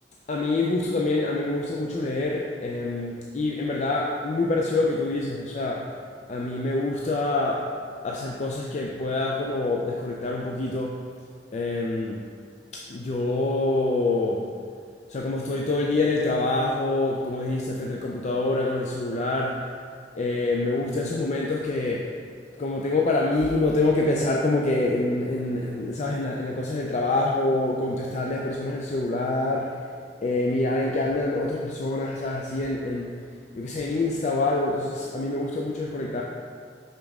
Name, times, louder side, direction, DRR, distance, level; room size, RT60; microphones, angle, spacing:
voice 1, 0.3-5.9 6.3-7.7 8.0-11.0 11.5-12.2 12.7-14.5 15.1-19.7 20.1-22.1 22.6-29.8 30.2-33.1 33.5-36.2, left 2 dB, 40° left, -2 dB, 0.4 m, -26 dB
5.9 x 5.2 x 3.6 m, 2.1 s
head